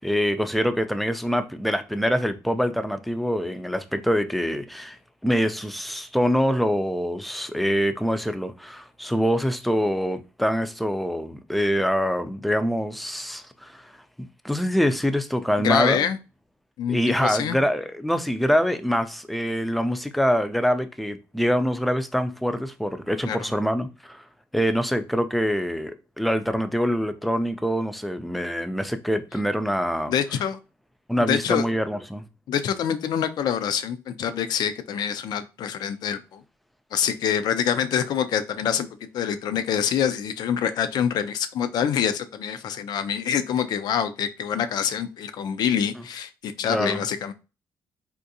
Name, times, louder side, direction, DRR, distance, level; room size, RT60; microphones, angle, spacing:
voice 1, 0.0-5.0 5.2-13.9 14.4-16.0 16.9-24.2 24.5-30.1 31.1-32.2 46.7-47.0, equal, ahead, 0.4 m, -25 dB
voice 2, 15.6-16.2 16.8-17.6 23.3-23.5 30.1-30.6 31.2-31.6 32.5-36.4 36.9-47.3, left 8 dB, 70° left, 0.4 m, -26 dB
3.6 x 2.5 x 2.7 m
cardioid pair, 80°, 7 cm